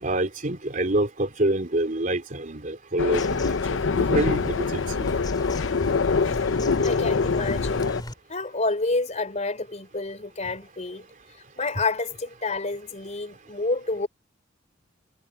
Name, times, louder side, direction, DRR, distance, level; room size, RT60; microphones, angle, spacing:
voice 1, 0.0-5.1, right 1 dB, 45° right, 3.3 m, -27 dB
sound 1, 3.0-8.0, left 4 dB, 80° left, 0.7 m, -24 dB
Bird vocalization bird call bird song, 3.1-8.1, left 1 dB, 20° left, 3.4 m, -38 dB
voice 2, 6.8-7.8 8.3-11.1 11.6-14.1, left 3 dB, 40° left, 3.5 m, -29 dB
head